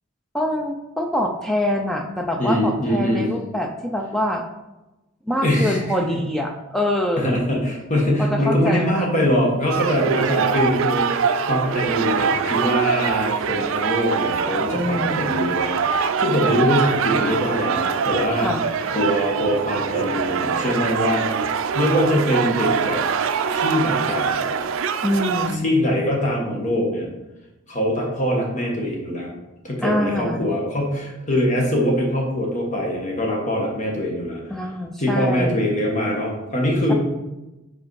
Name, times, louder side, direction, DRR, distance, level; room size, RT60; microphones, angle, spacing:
voice 1, 0.3-4.4 5.3-7.4 8.2-9.1 14.7-15.4 18.4-18.7 25.0-25.6 29.8-30.5 34.5-35.7, left 1 dB, ahead, 3 dB, 0.4 m, -25 dB
voice 2, 2.4-3.3 5.4-6.2 7.2-18.5 18.9-21.3 21.7-23.0 23.5-24.5 25.6-27.1 27.7-29.3 29.6-34.4 35.0-36.9, equal, 35° left, -1 dB, 1.3 m, -23 dB
sound 1, 9.7-25.6, right 6 dB, 70° right, 0.4 m, -23 dB
5.0 x 4.2 x 4.6 m, 1.0 s
head